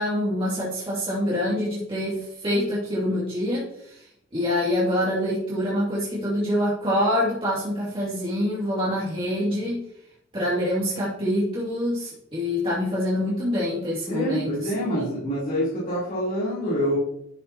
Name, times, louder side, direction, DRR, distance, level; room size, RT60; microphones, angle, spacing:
voice 1, 0.0-4.1 4.3-9.8 10.3-14.7, left 1 dB, 25° right, -7 dB, 2.3 m, -25 dB
voice 2, 14.1-17.0, equal, 45° left, -8 dB, 3.4 m, -26 dB
11.5 x 7.3 x 2.8 m, 0.73 s
head